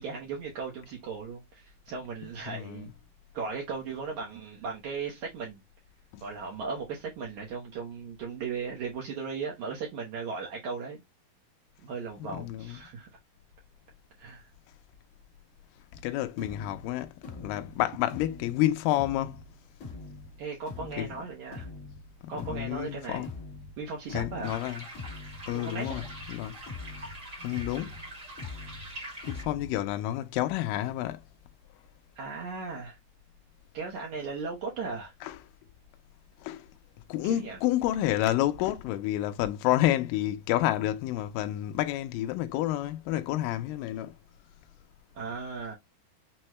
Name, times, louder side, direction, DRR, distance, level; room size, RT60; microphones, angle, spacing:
voice 1, 0.0-2.9 3.3-5.6 6.2-11.0 11.8-13.1 14.2-14.5 20.4-21.7 22.3-23.3 23.8-24.6 25.5-26.0 32.2-33.0 33.7-35.1 37.2-37.6 45.1-45.8, right 5 dB, 75° right, 1.8 m, -37 dB
voice 2, 2.5-2.9 6.1-6.2 12.2-12.8 16.0-19.4 21.0-21.1 22.2-23.3 24.1-24.8 25.5-26.0 26.3-26.6 27.4-27.9 29.3-31.2 35.2-35.4 36.4-36.7 37.1-44.1, left 14 dB, 85° left, 1.9 m, -29 dB
sound 1, 15.9-29.9, left 3 dB, 55° left, 1.1 m, -44 dB
sound 2, 24.4-29.4, right 1 dB, 40° right, 1.1 m, -44 dB
6.1 x 2.1 x 3.0 m
omnidirectional pair, 4.4 m